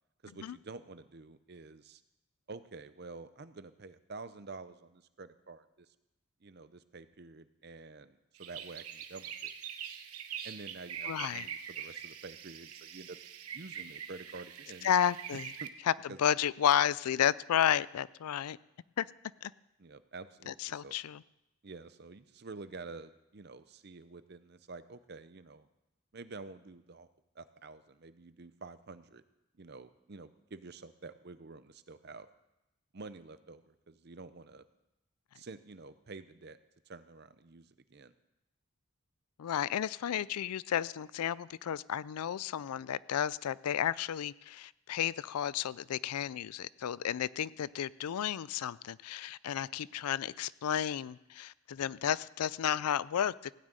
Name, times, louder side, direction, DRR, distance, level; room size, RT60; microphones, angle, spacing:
voice 1, 0.2-2.0 2.5-5.9 6.4-9.5 10.4-13.2 13.5-14.9 15.6-15.7 16.1-16.2 19.8-20.9 21.6-25.7 26.1-27.1 27.3-29.2 29.6-32.3 32.9-34.7 35.3-36.6 36.9-38.1, right 3 dB, 45° right, 13 dB, 0.6 m, -49 dB
sound 1, 8.4-15.7, right 8 dB, 85° right, 1.0 m, -44 dB
voice 2, 11.1-11.5 14.8-15.5 15.8-18.6 19.0-19.1 19.4-19.5 20.5-21.2 39.4-53.5, left 9 dB, 90° left, 20 dB, 0.4 m, -32 dB
16.5 x 6.3 x 8.9 m, 0.92 s
head